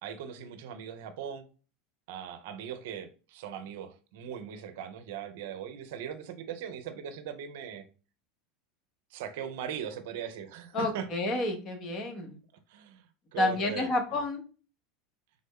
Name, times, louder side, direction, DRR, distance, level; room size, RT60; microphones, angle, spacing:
voice 1, 0.0-1.4 2.1-7.8 9.1-11.1 12.7-13.0 13.3-13.9, right 8 dB, 70° right, 0.5 m, -39 dB
voice 2, 10.7-12.4 13.4-14.4, left 2 dB, 40° left, 0.9 m, -30 dB
3.5 x 2.0 x 3.5 m
hypercardioid pair, 95°, 0 cm